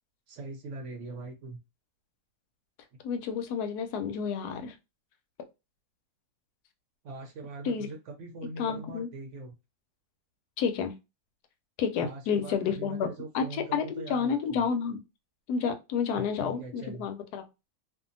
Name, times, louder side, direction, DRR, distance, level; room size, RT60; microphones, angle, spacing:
voice 1, 0.3-1.6 7.0-9.5 12.0-14.7 16.2-17.1, right 3 dB, 65° right, 0.8 m, -42 dB
voice 2, 3.0-4.7 7.6-7.9 8.6-9.1 10.6-10.9 11.8-13.1 13.3-13.5 13.7-15.0 15.5-17.4, left 6 dB, 90° left, 1.1 m, -30 dB
2.7 x 2.4 x 2.5 m
omnidirectional pair, 1.6 m